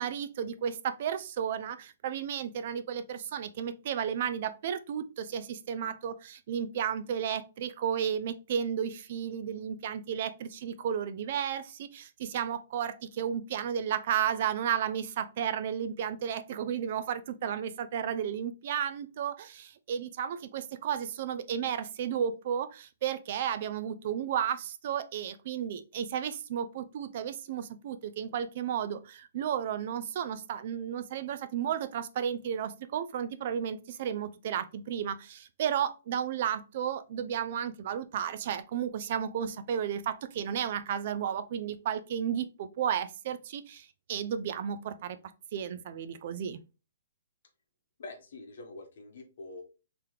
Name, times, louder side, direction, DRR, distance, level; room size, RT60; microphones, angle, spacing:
voice 1, 0.0-45.2 45.5-46.6, right 8 dB, 35° right, 12 dB, 0.3 m, -33 dB
voice 2, 48.0-49.6, left 2 dB, 55° left, 5 dB, 1.1 m, -45 dB
3.9 x 2.9 x 3.1 m, 0.30 s
hypercardioid pair, 175°, 0 cm